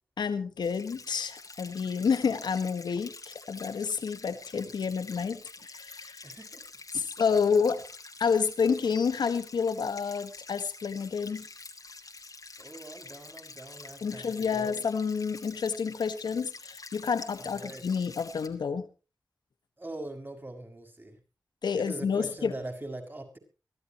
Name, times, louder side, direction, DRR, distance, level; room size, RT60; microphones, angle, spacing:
voice 1, 0.2-6.3 6.9-7.8 8.2-11.5 14.0-18.9 21.6-22.5, left 6 dB, 85° left, 10 dB, 1.5 m, -29 dB
sound 1, 0.6-18.5, left 3 dB, 55° left, 2.7 m, -47 dB
voice 2, 6.2-6.6 12.6-14.7 17.4-17.8 19.8-21.2 21.7-23.4, right 1 dB, 30° right, 4 dB, 6.1 m, -42 dB
23.5 x 13.5 x 3.0 m, 0.33 s
cardioid pair, 40°, 7 cm